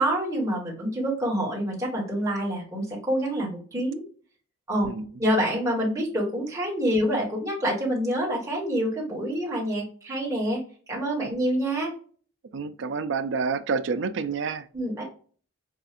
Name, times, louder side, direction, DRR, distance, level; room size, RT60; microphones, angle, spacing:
voice 1, 0.0-4.0 4.7-4.9 5.2-10.6 10.9-11.9 14.7-15.0, right 1 dB, 15° right, 1.5 m, -27 dB
voice 2, 12.5-14.7, right 5 dB, 60° right, 0.4 m, -28 dB
5.6 x 2.5 x 2.4 m
head